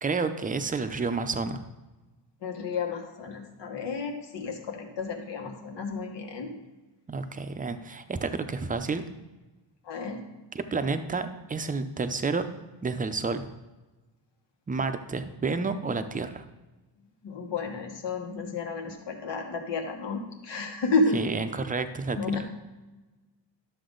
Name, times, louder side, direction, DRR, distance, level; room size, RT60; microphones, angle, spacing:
voice 1, 0.0-1.6 7.1-9.0 10.5-12.4 12.8-13.5 14.7-16.4 21.1-22.5, right 4 dB, 20° right, 9 dB, 0.5 m, -30 dB
voice 2, 2.4-6.5 9.8-10.2 17.2-21.2 22.1-22.5, left 3 dB, 85° left, 2 dB, 1.7 m, -31 dB
12.0 x 7.0 x 3.8 m, 1.1 s
wide cardioid pair, 160°, 42 cm